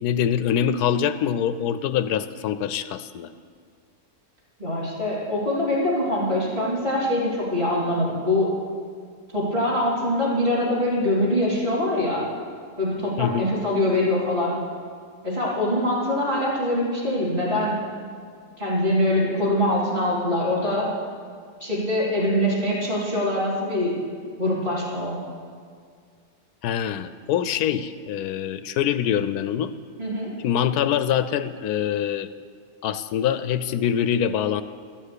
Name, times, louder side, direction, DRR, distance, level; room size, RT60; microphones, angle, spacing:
voice 1, 0.0-3.3 13.2-13.5 26.6-29.7 30.4-32.3 32.8-34.6, left 9 dB, 85° left, 13 dB, 1.1 m, -24 dB
voice 2, 4.6-8.5 9.3-12.2 12.8-14.5 15.2-17.8 18.6-20.9 21.6-23.9 24.4-25.1 30.0-30.3, left 1 dB, 30° right, -5 dB, 4.0 m, -23 dB
13.0 x 7.4 x 8.2 m, 2.1 s
omnidirectional pair, 1.6 m